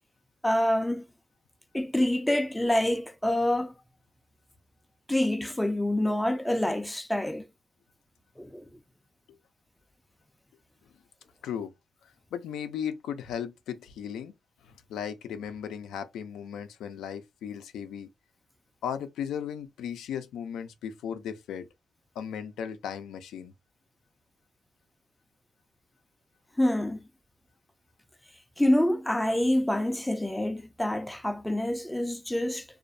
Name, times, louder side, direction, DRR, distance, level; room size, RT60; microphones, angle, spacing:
voice 1, 0.4-1.0 1.7-3.7 5.1-7.5 8.4-8.6 26.6-27.0 28.6-32.7, left 1 dB, 5° left, 0.3 m, -26 dB
voice 2, 12.3-14.3 14.9-18.1 18.8-21.7 22.2-23.5, left 8 dB, 80° left, 0.4 m, -36 dB
2.4 x 2.0 x 2.5 m
cardioid pair, 85°, 0 cm